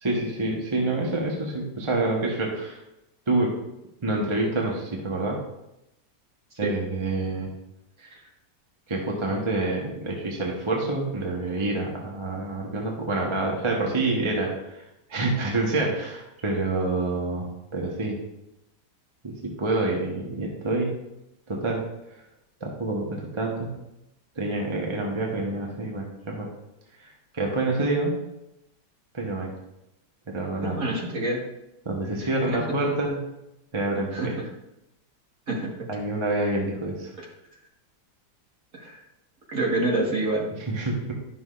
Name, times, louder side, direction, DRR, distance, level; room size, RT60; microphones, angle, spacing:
voice 1, 0.0-2.8 3.3-3.6 4.0-5.4 6.6-7.5 8.0-8.1 8.9-18.2 19.2-20.9 21.5-21.8 22.6-23.7 24.4-26.5 27.0-27.1 27.3-28.1 29.1-29.5 30.3-30.8 31.8-33.3 33.7-34.4 35.9-37.1 40.7-41.1, right 2 dB, 20° right, -1 dB, 0.9 m, -27 dB
voice 2, 30.6-31.4 32.2-32.6 34.1-34.4 35.5-35.7 37.2-37.3 38.7-39.0 39.5-40.5, right 2 dB, 50° right, -3 dB, 2.0 m, -27 dB
11.5 x 6.1 x 2.5 m, 0.88 s
omnidirectional pair, 1.9 m